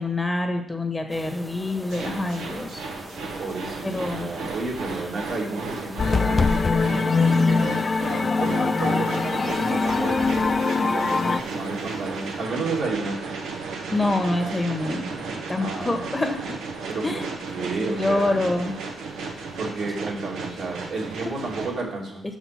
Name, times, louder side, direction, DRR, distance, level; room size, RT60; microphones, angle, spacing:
voice 1, 0.0-2.8 3.8-4.4 13.9-16.6 17.0-17.3 17.8-18.7 21.2-21.3, left 2 dB, 20° left, 5 dB, 1.5 m, -26 dB
sound 1, 1.1-12.7, right 1 dB, 5° right, 0.9 m, -42 dB
sound 2, 1.9-21.7, right 4 dB, 85° right, 1.3 m, -34 dB
voice 2, 3.4-7.6 8.1-13.2 15.6-16.0 16.9-18.4 19.6-22.2, right 3 dB, 65° right, -2 dB, 2.6 m, -32 dB
sound 3, 6.0-11.4, left 4 dB, 40° left, 0.4 m, -22 dB
6.6 x 6.3 x 5.9 m, 0.74 s
cardioid pair, 65°, 0 cm